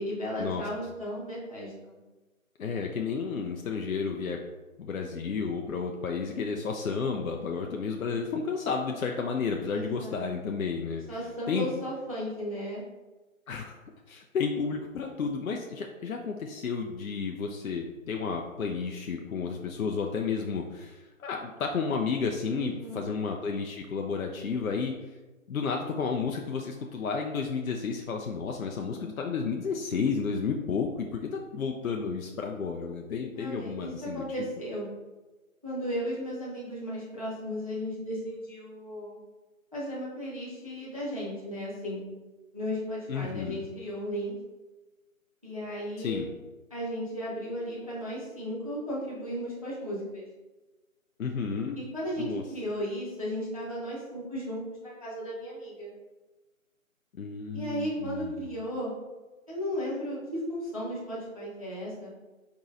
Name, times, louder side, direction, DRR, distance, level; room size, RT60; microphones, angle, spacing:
voice 1, 0.0-2.0 9.7-10.3 11.1-12.8 22.5-23.0 33.3-34.9 35.6-39.2 39.7-42.0 42.5-44.3 45.4-46.3 46.7-50.3 51.8-55.9 57.5-58.9 59.5-62.1, equal, 25° right, -6 dB, 0.6 m, -35 dB
voice 2, 2.6-4.4 4.8-11.0 11.5-11.7 13.5-13.8 14.1-25.0 25.5-34.2 43.1-43.6 46.0-46.3 51.2-51.8 52.2-52.4 57.2-58.5, left 5 dB, 75° left, 2 dB, 0.6 m, -32 dB
4.6 x 4.0 x 2.5 m, 1.2 s
figure-of-eight pair, 170°, 42 cm